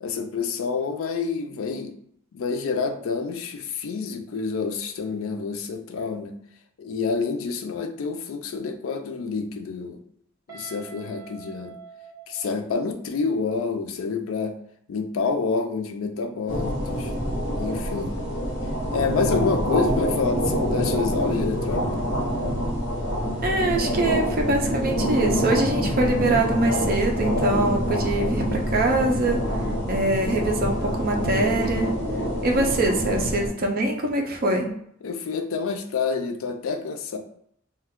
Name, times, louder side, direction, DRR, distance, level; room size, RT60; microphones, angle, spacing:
voice 1, 0.0-1.9 2.3-6.4 6.8-10.0 10.5-11.8 12.3-14.6 14.9-17.1 17.6-18.2 18.9-21.9 35.0-37.2, left 4 dB, 85° left, 6 dB, 0.4 m, -28 dB
Guitar, 10.5-13.3, right 6 dB, 15° right, 0.9 m, -45 dB
sound 1, 16.5-33.5, equal, 65° left, 0.8 m, -26 dB
voice 2, 23.4-29.4 29.9-31.9 32.4-34.7, right 2 dB, 45° right, 2 dB, 0.5 m, -23 dB
2.5 x 2.3 x 3.5 m, 0.69 s
head